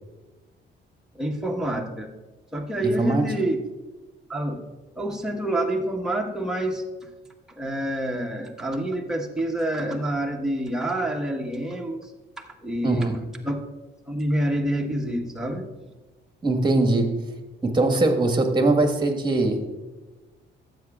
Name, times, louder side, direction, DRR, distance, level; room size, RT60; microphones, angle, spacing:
voice 1, 1.1-2.1 2.5-3.6 4.3-4.6 4.9-7.1 7.6-12.1 12.4-13.1 13.4-13.6 14.1-15.7, right 1 dB, 5° right, 0 dB, 1.3 m, -27 dB
voice 2, 2.8-3.2 12.8-13.2 16.4-17.1 17.6-19.6, right 2 dB, 20° right, 5 dB, 1.5 m, -21 dB
12.5 x 8.0 x 2.4 m, 1.2 s
cardioid pair, 90°, 20 cm